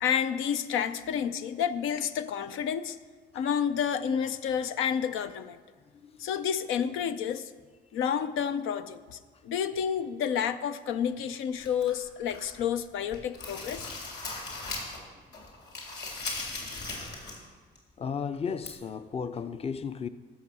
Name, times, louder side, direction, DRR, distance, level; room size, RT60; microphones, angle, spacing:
voice 1, 0.0-3.0 3.3-5.6 6.2-7.5 7.9-13.9, left 8 dB, 90° left, 0.5 m, -30 dB
sound 1, 11.6-12.6 13.0-15.0 15.3-17.5 17.7-17.8 18.6-18.7, left 3 dB, 55° left, 3.4 m, -38 dB
voice 2, 18.0-20.1, left 6 dB, 30° left, 0.5 m, -34 dB
14.0 x 6.4 x 6.2 m
cardioid pair, 90°, 20 cm